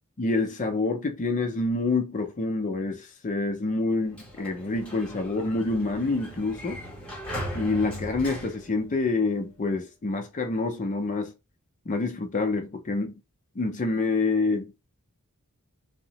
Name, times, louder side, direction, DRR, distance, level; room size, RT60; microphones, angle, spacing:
voice 1, 0.2-6.8 7.5-11.3 11.9-13.2 13.6-14.8, left 3 dB, 35° left, 0.4 m, -27 dB
Sliding door, 3.9-9.5, equal, 5° left, 0.8 m, -39 dB
2.7 x 2.1 x 2.8 m
head